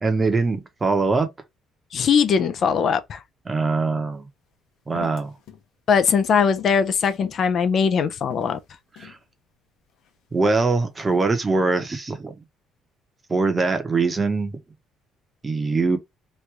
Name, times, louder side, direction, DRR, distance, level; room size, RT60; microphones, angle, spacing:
voice 1, 0.0-1.3 3.5-4.3 4.9-5.3 9.0-9.2 10.3-12.4 13.3-14.6 15.4-16.0, right 3 dB, 25° right, 0.9 m, -22 dB
voice 2, 1.9-3.2 5.9-8.6, left 6 dB, 50° left, 0.5 m, -20 dB
sound 1, 4.1-4.2 4.9-5.6 6.0-7.4 7.9-8.0 8.3-9.2 9.9-10.6 11.0-11.3, left 10 dB, 80° left, 0.9 m, -43 dB
3.1 x 2.6 x 3.2 m
cardioid pair, 120°, 0 cm